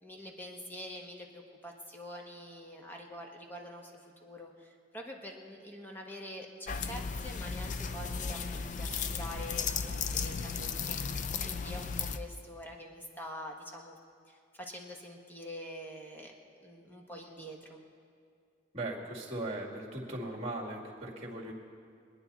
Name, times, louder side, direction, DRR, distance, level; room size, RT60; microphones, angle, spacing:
voice 1, 0.0-14.0 14.3-16.3 16.6-17.8, equal, 10° left, 0 dB, 1.3 m, -46 dB
sound 1, 6.7-12.2, left 5 dB, 40° left, 0.5 m, -35 dB
voice 2, 18.7-21.5, right 1 dB, 35° right, -1 dB, 2.0 m, -38 dB
23.0 x 9.8 x 4.1 m, 2.3 s
head